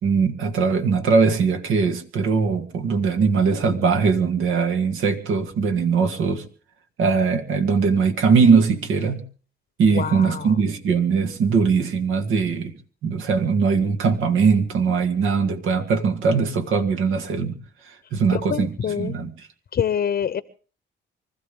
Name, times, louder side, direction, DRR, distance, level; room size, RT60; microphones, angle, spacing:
voice 1, 0.0-6.4 7.0-9.2 9.8-12.7 13.0-17.6 17.9-18.7 19.0-19.3, right 5 dB, 85° right, 6 dB, 2.3 m, -20 dB
voice 2, 9.9-10.6 18.3-19.2 19.7-20.4, left 8 dB, 50° left, 15 dB, 0.8 m, -26 dB
25.0 x 14.5 x 3.7 m, 0.40 s
cardioid pair, 90°, 20 cm